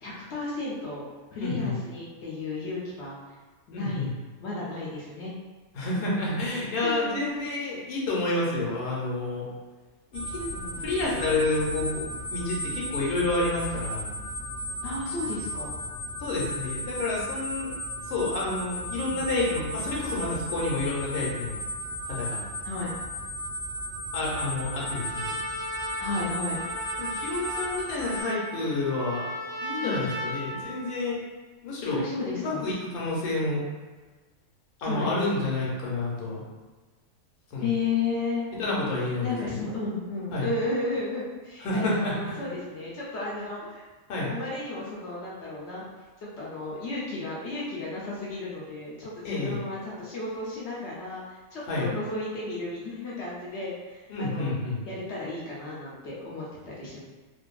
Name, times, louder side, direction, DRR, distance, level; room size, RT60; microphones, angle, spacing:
voice 1, 0.0-1.0 1.3-3.1 3.7-5.3 6.8-7.5 10.5-11.0 14.8-15.7 19.0-19.3 22.6-22.9 26.0-26.6 29.8-30.1 31.9-32.6 34.8-35.1 37.6-38.4 39.2-43.8 44.3-45.8 46.2-51.2 51.5-54.5 54.9-57.0, left 3 dB, 60° left, -6 dB, 0.7 m, -33 dB
voice 2, 1.4-1.7 3.7-4.1 5.7-9.4 10.1-10.5 10.8-12.0 12.3-14.1 16.2-17.8 18.1-21.6 22.1-22.4 24.1-25.4 27.0-29.2 29.6-31.2 31.6-32.0 32.3-33.6 34.8-36.4 37.5-37.8 38.6-39.4 40.3-40.5 41.6-42.4 44.1-44.3 49.2-49.6 51.7-51.9 54.1-54.8, left 2 dB, 85° left, -4 dB, 1.2 m, -29 dB
sound 1, 10.1-28.2, equal, 35° left, 0.3 m, -35 dB
Trumpet, 24.2-31.0, equal, 65° right, 0.8 m, -36 dB
2.5 x 2.5 x 2.2 m, 1.3 s
omnidirectional pair, 1.5 m